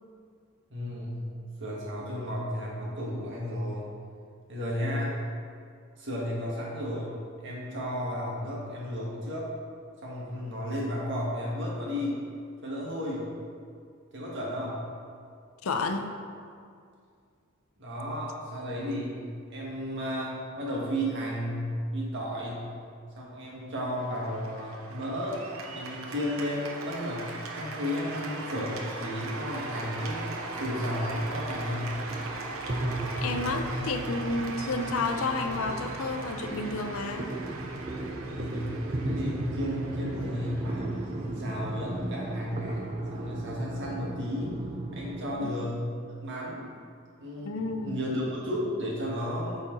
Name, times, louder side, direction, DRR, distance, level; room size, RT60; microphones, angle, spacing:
voice 1, 0.7-1.3 1.6-3.8 4.5-5.1 6.0-7.1 7.4-9.5 10.0-12.2 12.6-13.3 14.1-14.8 17.8-19.2 19.5-22.7 23.1-25.4 25.6-31.9 38.2-40.9 41.4-42.8 43.1-44.5 44.9-46.7 47.2-49.6, equal, 60° right, -5 dB, 1.7 m, -33 dB
voice 2, 15.6-16.1 33.2-37.3 45.4-45.7 47.4-48.0, left 3 dB, 85° left, 7 dB, 0.5 m, -31 dB
Cheering / Applause, 24.0-43.2, right 3 dB, 75° right, 0.8 m, -40 dB
sound 1, 29.4-45.4, right 1 dB, 30° right, 0.5 m, -36 dB
8.5 x 4.2 x 3.9 m, 2.2 s
head